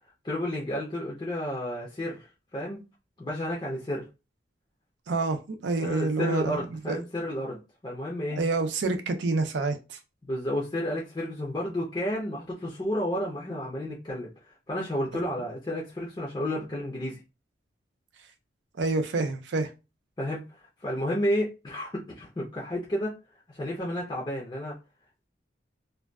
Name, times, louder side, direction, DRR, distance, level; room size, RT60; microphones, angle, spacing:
voice 1, 0.2-2.8 3.2-4.0 5.8-8.4 10.2-17.2 20.2-23.1 23.5-24.8, left 1 dB, 25° left, 0.5 m, -31 dB
voice 2, 5.1-7.0 8.4-10.0 15.1-15.5 18.8-19.7, right 3 dB, 75° right, 0.4 m, -28 dB
2.5 x 2.2 x 2.2 m
head